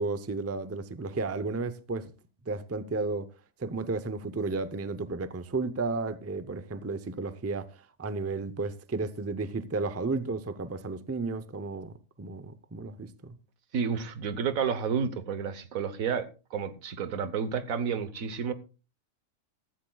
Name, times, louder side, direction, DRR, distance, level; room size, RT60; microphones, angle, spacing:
voice 1, 0.0-2.1 2.5-3.3 3.6-13.4, right 3 dB, 20° right, 0.4 m, -33 dB
voice 2, 13.7-18.5, right 6 dB, 85° right, 1.5 m, -31 dB
15.0 x 14.0 x 2.3 m
omnidirectional pair, 1.4 m